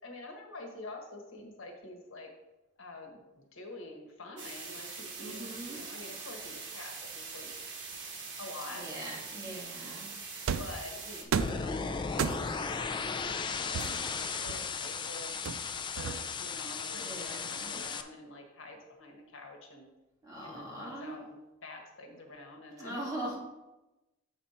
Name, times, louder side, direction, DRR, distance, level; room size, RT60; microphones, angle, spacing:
voice 1, 0.0-2.3 2.8-7.6 8.4-8.9 9.4-9.5 9.8-10.1 10.5-12.7 13.0-15.3 15.8-19.9 20.4-23.0, left 2 dB, 80° left, 2 dB, 1.3 m, -47 dB
sound 1, 4.4-11.2, right 4 dB, 60° right, 1.4 m, -43 dB
voice 2, 5.2-5.8 8.7-10.1 16.9-17.9 20.2-21.2 22.8-23.4, right 1 dB, 20° right, -5 dB, 1.9 m, -41 dB
sound 2, 10.5-10.8 11.3-11.7 12.2-12.7 13.7-14.9 15.5-16.5, right 7 dB, 85° right, 0.4 m, -34 dB
sound 3, 11.4-18.0, left 5 dB, 25° left, 0.3 m, -36 dB
7.1 x 5.4 x 4.3 m, 1.0 s
head